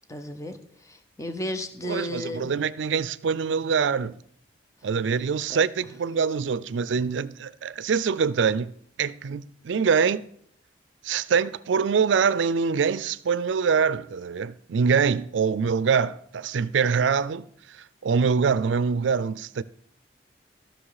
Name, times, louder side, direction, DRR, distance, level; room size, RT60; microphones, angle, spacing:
voice 1, 0.1-2.5 5.5-5.6, left 1 dB, 15° left, 0.8 m, -34 dB
voice 2, 1.8-4.2 4.8-8.7 9.0-10.2 11.0-19.6, right 6 dB, 85° right, 0.4 m, -24 dB
14.0 x 6.1 x 4.8 m
head